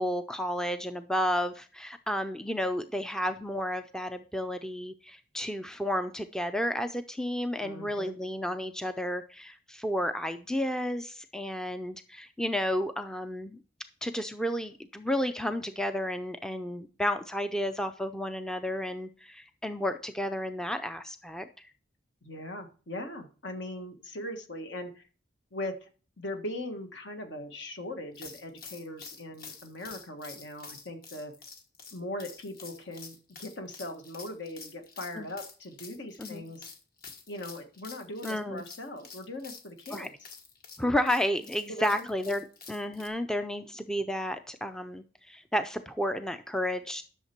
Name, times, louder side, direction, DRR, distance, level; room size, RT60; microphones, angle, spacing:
voice 1, 0.0-13.6 14.0-21.7 35.2-35.3 36.2-36.4 38.2-38.6 39.9-40.1 40.8-47.0, equal, 5° left, 8 dB, 0.4 m, -32 dB
voice 2, 7.6-8.1 22.2-25.1 25.5-25.9 26.2-31.3 31.9-36.7 37.3-40.3 41.7-42.1, left 1 dB, 70° left, 6 dB, 1.5 m, -40 dB
sound 1, 28.1-43.1, left 5 dB, 50° left, 1.5 m, -48 dB
11.0 x 6.5 x 4.4 m, 0.39 s
head